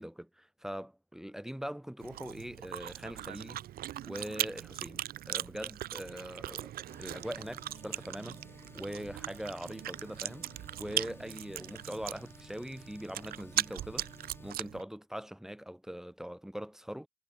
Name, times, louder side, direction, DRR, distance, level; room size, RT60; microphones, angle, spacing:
voice 1, 0.0-3.6 4.0-6.7 7.0-8.4 8.7-10.5 10.8-14.1 14.4-17.1, equal, 5° right, 1.7 m, -42 dB
Chewing mastication, 2.0-14.8, right 13 dB, 65° right, 1.1 m, -39 dB
sound 1, 6.9-14.6, left 2 dB, 15° left, 1.8 m, -55 dB
cardioid pair, 110°, 17 cm